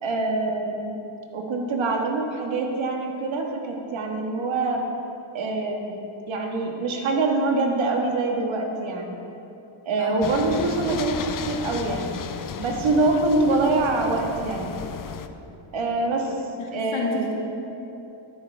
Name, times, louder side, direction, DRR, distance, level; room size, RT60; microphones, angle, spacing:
voice 1, 0.0-1.0 1.3-4.9 5.3-6.0 6.3-9.2 9.8-12.2 12.6-14.8 15.7-16.4 16.7-17.3, right 3 dB, 70° right, 1 dB, 1.7 m, -25 dB
voice 2, 10.0-10.3 16.6-17.3, left 4 dB, 70° left, -2 dB, 2.2 m, -30 dB
sound 1, 10.2-15.3, left 7 dB, 40° left, 0.6 m, -34 dB
12.5 x 10.5 x 3.4 m, 2.9 s
cardioid pair, 105°, 49 cm